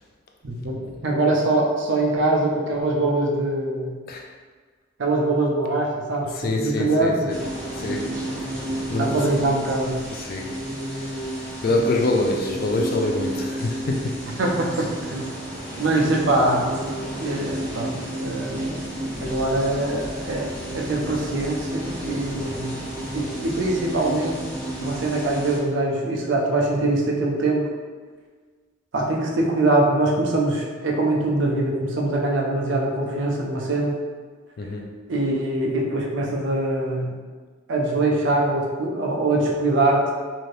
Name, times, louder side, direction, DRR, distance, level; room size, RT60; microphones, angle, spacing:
voice 1, 0.4-3.9 5.0-6.3 6.6-7.3 9.0-10.0 14.4-15.3 15.8-16.7 17.2-18.7 19.2-22.7 23.1-24.5 24.8-27.7 28.9-34.0 35.1-37.1 37.7-40.0, right 2 dB, 60° right, -1 dB, 0.5 m, -23 dB
voice 2, 6.3-7.4 7.7-8.2 8.9-9.1 10.1-10.5 11.0-14.2 34.6-35.0, left 2 dB, 45° left, 1 dB, 0.4 m, -26 dB
sound 1, 7.3-25.6, right 1 dB, 5° left, 1.0 m, -32 dB
2.7 x 2.6 x 3.2 m, 1.5 s
head